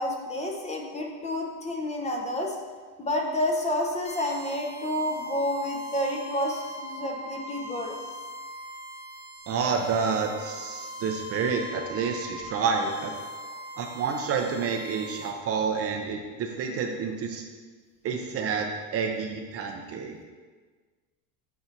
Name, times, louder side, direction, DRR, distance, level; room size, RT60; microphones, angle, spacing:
voice 1, 0.0-2.6 3.0-8.0, left 1 dB, 15° left, 1 dB, 0.7 m, -29 dB
sound 1, 4.0-15.3, equal, 35° left, 1.2 m, -41 dB
voice 2, 9.5-13.1 13.8-17.5 18.0-20.2, right 5 dB, 35° right, 3 dB, 0.6 m, -29 dB
8.0 x 2.8 x 4.5 m, 1.4 s
supercardioid pair, 120°, 39 cm